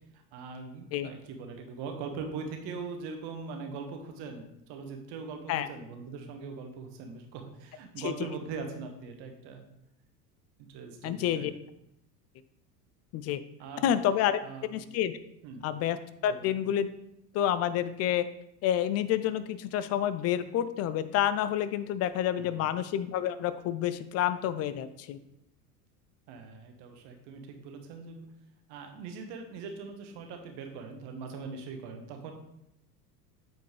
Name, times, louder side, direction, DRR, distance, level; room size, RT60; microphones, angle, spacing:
voice 1, 0.0-9.6 10.6-11.5 13.6-13.9 14.3-14.9 15.4-15.7 16.3-16.6 22.3-22.6 26.3-28.3 28.7-32.3, right 5 dB, 55° right, 4 dB, 1.4 m, -41 dB
voice 2, 11.0-11.5 13.1-13.4 13.8-14.4 14.7-15.1 15.6-16.0 16.2-16.9 17.3-18.3 18.6-25.2, left 11 dB, 35° left, 14 dB, 0.4 m, -28 dB
8.2 x 4.4 x 3.3 m, 0.80 s
hypercardioid pair, 85°, 48 cm